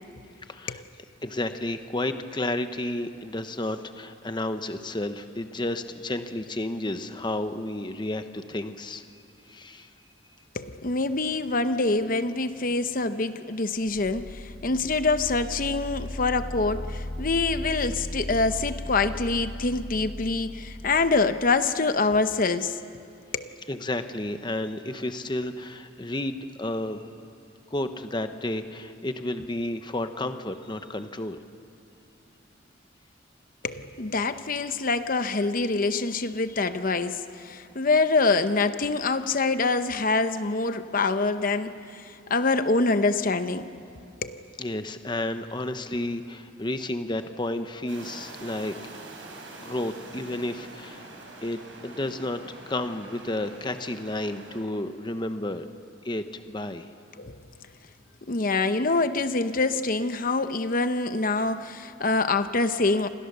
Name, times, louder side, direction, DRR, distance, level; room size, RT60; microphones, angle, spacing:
voice 1, 0.5-0.8 1.2-9.2 9.5-9.9 23.7-27.1 27.7-31.4 44.6-48.9 49.6-51.1 51.4-55.7 56.0-56.9, left 1 dB, 25° left, 8 dB, 1.0 m, -31 dB
voice 2, 10.5-22.8 23.3-23.5 33.6-43.7 44.2-44.4 57.2-57.4 58.3-63.1, left 3 dB, 45° left, 10 dB, 0.8 m, -25 dB
sound 1, 13.7-21.5, left 1 dB, 90° left, 2.6 m, -37 dB
sound 2, 47.9-54.6, right 2 dB, 80° right, 5.6 m, -45 dB
29.0 x 26.5 x 6.8 m, 2.5 s
head